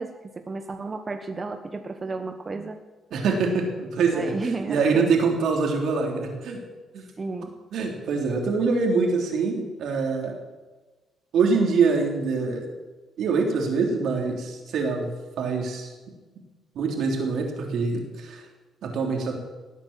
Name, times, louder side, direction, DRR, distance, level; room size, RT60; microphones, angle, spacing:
voice 1, 0.0-2.8 4.1-5.1 7.2-7.5, right 3 dB, 30° right, 6 dB, 1.1 m, -32 dB
voice 2, 3.1-4.3 4.7-6.6 6.9-7.0 7.7-10.3 11.3-12.7 13.2-15.1 15.4-15.9 16.8-18.4 18.8-19.4, right 4 dB, 75° right, 1 dB, 3.5 m, -24 dB
19.0 x 9.0 x 7.5 m, 1.3 s
cardioid pair, 90°, 0 cm